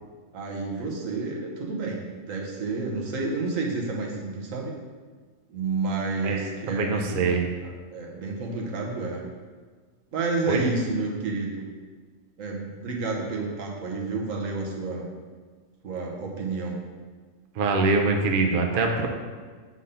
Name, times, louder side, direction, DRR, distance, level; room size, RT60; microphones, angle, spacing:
voice 1, 0.3-2.0 2.3-4.7 5.5-7.2 7.6-9.2 10.1-11.7 12.4-15.1 15.8-16.8, right 3 dB, 80° right, -1 dB, 1.4 m, -30 dB
voice 2, 6.2-7.5 10.5-10.6 17.6-19.1, right 3 dB, 50° right, 2 dB, 0.7 m, -24 dB
5.0 x 4.0 x 5.5 m, 1.5 s
omnidirectional pair, 1.4 m